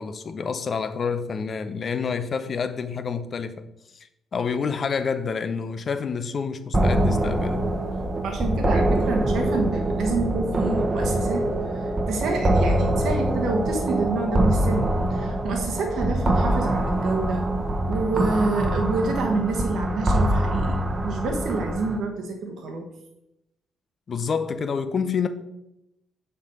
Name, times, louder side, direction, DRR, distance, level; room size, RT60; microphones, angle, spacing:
voice 1, 0.0-3.7 4.3-7.7 24.1-25.3, left 5 dB, 45° left, 0.7 m, -28 dB
sound 1, 6.7-22.0, right 1 dB, 30° right, 1.1 m, -24 dB
voice 2, 8.2-11.5 11.7-17.5 17.9-22.9, right 3 dB, 60° right, 1.2 m, -28 dB
6.8 x 5.0 x 5.5 m
figure-of-eight pair, 40°, 0 cm